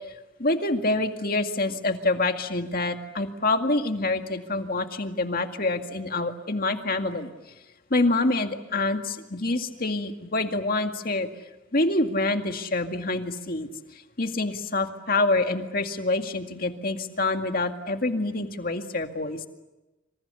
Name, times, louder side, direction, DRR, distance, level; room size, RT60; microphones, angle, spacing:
voice 1, 0.4-7.3 7.9-11.3 11.7-13.7 14.2-19.5, left 2 dB, 50° left, 5 dB, 2.1 m, -26 dB
27.0 x 26.5 x 7.0 m, 1.0 s
head